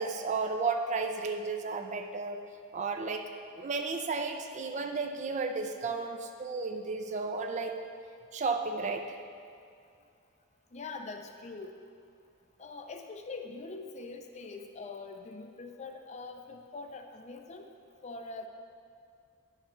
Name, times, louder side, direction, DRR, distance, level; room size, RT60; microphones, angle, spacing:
voice 1, 0.0-2.4 2.7-3.3 3.5-7.9 8.3-9.1, right 4 dB, 35° right, 5 dB, 0.4 m, -33 dB
voice 2, 10.7-11.7 12.6-17.6 18.0-18.5, left 3 dB, 30° left, 5 dB, 0.5 m, -43 dB
10.5 x 6.6 x 3.1 m, 2.3 s
head